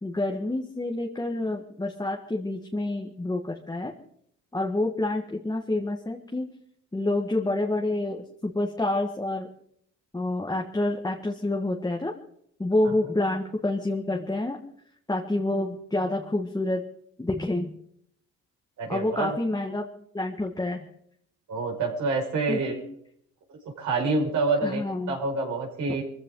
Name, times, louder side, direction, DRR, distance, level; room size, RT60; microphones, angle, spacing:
voice 1, 0.0-3.9 4.5-6.5 6.9-9.5 10.1-12.1 12.6-14.6 15.1-16.8 17.2-17.7 18.9-19.9 20.1-20.9 22.5-22.8 24.6-25.2, left 2 dB, 15° left, 1 dB, 1.7 m, -28 dB
voice 2, 18.8-19.3 21.5-22.7 23.8-24.8 25.1-26.0, right 3 dB, 75° right, -1 dB, 5.7 m, -27 dB
23.0 x 15.0 x 3.9 m, 0.69 s
cardioid pair, 90°, 30 cm